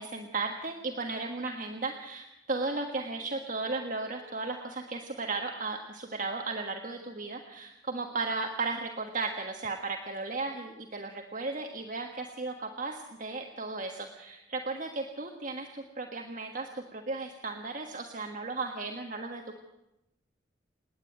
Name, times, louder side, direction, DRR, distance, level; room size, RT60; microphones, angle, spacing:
voice 1, 0.0-19.6, right 3 dB, 45° right, 2 dB, 1.5 m, -35 dB
28.0 x 10.0 x 9.3 m, 0.92 s
head